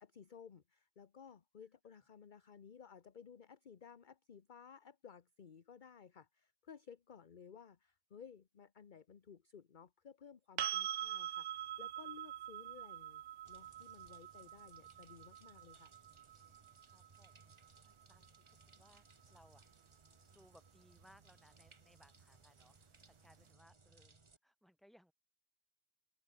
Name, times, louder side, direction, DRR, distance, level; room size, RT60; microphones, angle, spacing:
voice 1, 0.0-13.2 13.5-15.9, left 7 dB, 45° left, 1.0 m, -57 dB
sound 1, 10.6-18.4 21.2-21.3, right 12 dB, 80° right, 1.0 m, -44 dB
sound 2, 13.4-24.4, right 3 dB, 25° right, 1.1 m, -65 dB
voice 2, 16.9-19.7 20.3-24.2 24.4-25.1, equal, ahead, 4.7 m, -67 dB
omnidirectional pair, 1.3 m